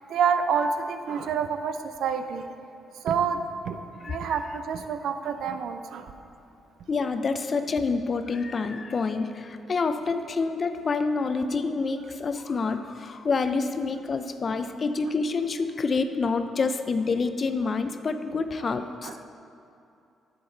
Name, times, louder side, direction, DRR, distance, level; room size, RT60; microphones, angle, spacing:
voice 1, 0.0-2.4 3.0-3.4 3.7-6.1 19.0-19.2, right 6 dB, 75° right, 9 dB, 0.5 m, -28 dB
voice 2, 4.0-4.5 6.9-19.2, left 4 dB, 40° left, 9 dB, 0.5 m, -27 dB
11.0 x 6.9 x 3.9 m, 2.7 s
cardioid pair, 90°, 0 cm